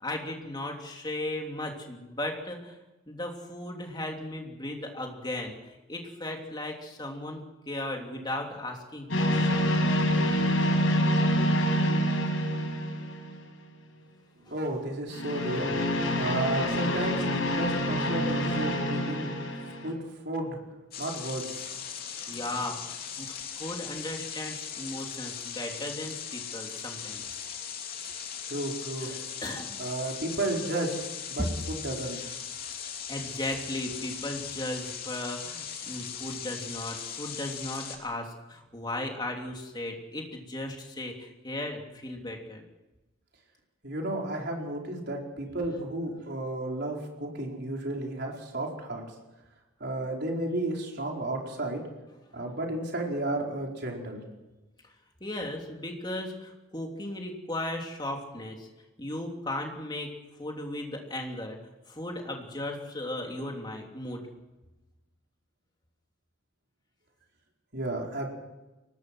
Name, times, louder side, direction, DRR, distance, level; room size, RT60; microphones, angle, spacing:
voice 1, 0.0-2.8 3.1-9.7 14.5-14.6 21.9-22.9 23.2-27.4 29.0-29.8 31.4-31.5 33.1-42.6 52.3-52.6 55.2-58.7 59.0-61.6 61.9-64.2, left 1 dB, 20° left, 1 dB, 3.1 m, -36 dB
sound 1, 9.1-13.6 15.1-19.9, equal, 80° left, 5.2 m, -27 dB
voice 2, 14.5-15.8 16.1-19.3 19.8-20.0 20.2-20.6 21.0-21.7 28.5-29.1 29.8-31.0 31.3-32.3 43.8-49.0 49.8-51.8 52.3-54.2 67.7-68.3, right 1 dB, 55° right, 0 dB, 4.7 m, -32 dB
sound 2, 20.9-38.0, left 8 dB, 50° left, 3.0 m, -39 dB
23.5 x 19.5 x 6.3 m, 1.1 s
head